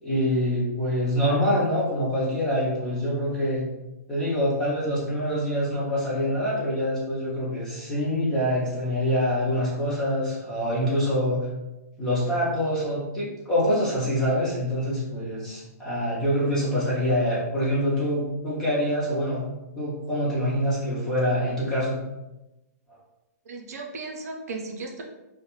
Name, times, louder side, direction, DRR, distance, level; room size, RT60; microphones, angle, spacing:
voice 1, 0.0-3.7 4.1-11.5 12.0-19.5 19.8-22.0 22.9-23.0, equal, 5° left, -8 dB, 0.4 m, -25 dB
voice 2, 23.5-25.0, right 3 dB, 65° right, 1 dB, 0.5 m, -36 dB
2.2 x 2.1 x 3.0 m, 1.0 s
hypercardioid pair, 175°, 9 cm